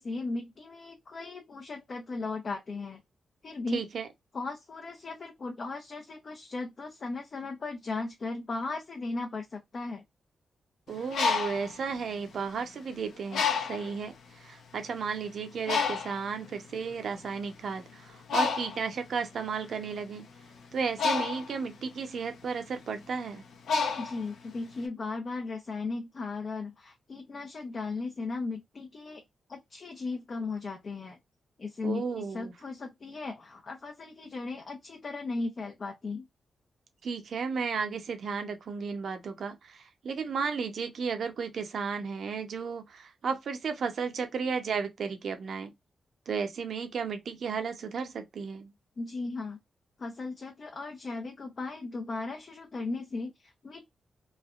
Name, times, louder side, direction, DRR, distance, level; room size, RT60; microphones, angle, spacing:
voice 1, 0.0-3.0 3.4-3.8 4.3-10.0 24.0-29.2 29.5-31.2 31.6-36.3 49.0-49.6 50.0-53.8, left 3 dB, 50° left, 0.6 m, -37 dB
voice 2, 3.7-4.1 10.9-20.3 20.7-23.4 31.8-32.5 37.0-45.7 46.3-48.7, right 5 dB, 70° right, 0.8 m, -34 dB
Bird, 10.9-12.8 13.3-14.0 14.7-14.8 15.1-24.8, left 5 dB, 90° left, 0.7 m, -31 dB
3.2 x 2.4 x 2.4 m
cardioid pair, 90°, 0 cm